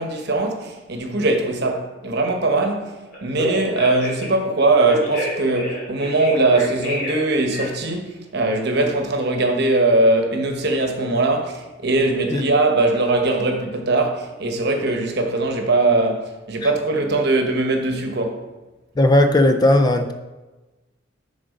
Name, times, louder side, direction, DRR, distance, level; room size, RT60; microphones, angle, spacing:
voice 1, 0.0-18.4, right 2 dB, 55° right, 1.0 m, -21 dB
Telephone, 3.1-4.3 4.8-7.2 7.5-7.9, left 1 dB, 45° left, 1.7 m, -28 dB
voice 2, 19.0-20.1, left 1 dB, 20° left, 0.4 m, -16 dB
7.5 x 3.8 x 5.3 m
head